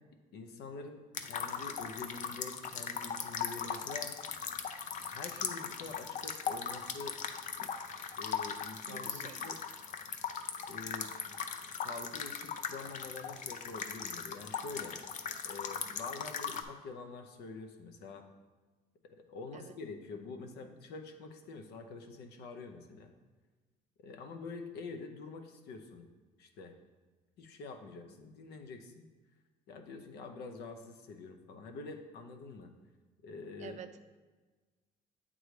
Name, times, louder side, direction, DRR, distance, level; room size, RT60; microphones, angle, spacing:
voice 1, 0.3-4.1 5.0-7.2 8.2-9.6 10.7-11.1 11.8-15.0 15.4-18.3 19.2-23.1 24.0-26.1 26.4-26.7 27.4-29.1 29.7-32.7 33.2-33.8, left 4 dB, 75° left, 6 dB, 0.7 m, -46 dB
sound 1, 1.1-16.6, left 7 dB, 50° left, 0.5 m, -39 dB
voice 2, 8.9-9.5 19.5-19.7 33.6-34.0, right 8 dB, 45° right, 9 dB, 0.4 m, -48 dB
7.9 x 3.8 x 3.2 m, 1.3 s
cardioid pair, 110°, 17 cm